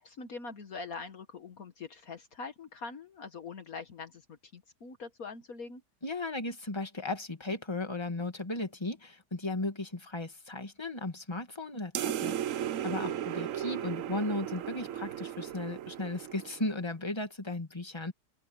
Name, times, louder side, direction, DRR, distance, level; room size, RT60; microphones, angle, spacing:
voice 1, 0.0-4.2 4.5-5.8 13.0-13.2, left 4 dB, 60° left, 1.8 m, -43 dB
voice 2, 6.0-18.1, left 2 dB, 15° left, 2.3 m, -36 dB
sound 1, 11.9-16.8, right 11 dB, 65° right, 0.9 m, -35 dB
open air
omnidirectional pair, 1.7 m